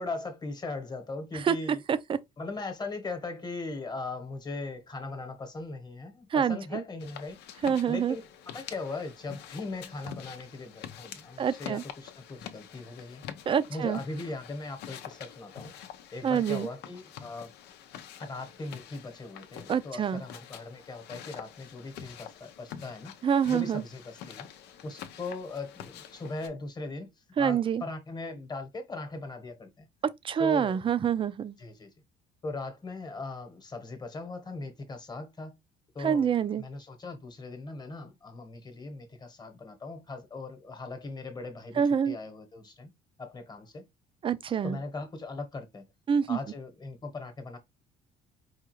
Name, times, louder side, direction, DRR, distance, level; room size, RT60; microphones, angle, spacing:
voice 1, 0.0-1.8 2.4-7.4 7.9-8.3 8.5-13.2 13.7-15.7 16.1-17.5 18.2-23.1 23.5-24.5 24.8-27.1 27.4-29.9 30.4-30.8 31.6-31.9 32.4-35.5 35.9-42.9 43.2-43.8 44.6-45.8 46.3-47.6, left 3 dB, 25° left, 1.1 m, -39 dB
voice 2, 6.3-6.8 7.6-8.2 11.4-11.8 13.5-14.0 16.2-16.7 19.7-20.2 23.2-23.8 27.4-27.8 30.2-31.6 36.0-36.6 41.8-42.2 44.2-44.8 46.1-46.4, right 7 dB, 30° right, 0.4 m, -26 dB
sound 1, 7.0-26.5, left 9 dB, 80° left, 0.6 m, -46 dB
4.8 x 2.4 x 3.0 m
cardioid pair, 110°, 17 cm